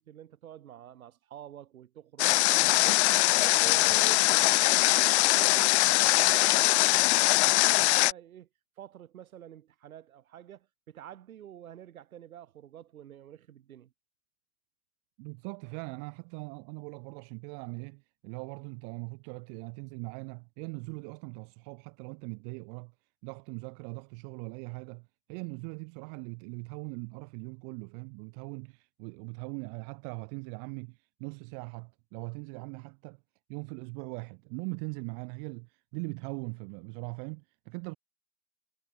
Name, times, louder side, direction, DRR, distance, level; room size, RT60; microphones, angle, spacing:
voice 1, 0.0-3.1 3.4-8.5 8.8-13.9, right 11 dB, 70° right, 7.1 m, -48 dB
Water, 2.2-8.1, left 19 dB, 50° left, 0.6 m, -22 dB
voice 2, 15.2-22.9 23.2-33.2 33.5-38.0, right 40 dB or more, 40° right, 1.1 m, -41 dB
hypercardioid pair, 105°, 44 cm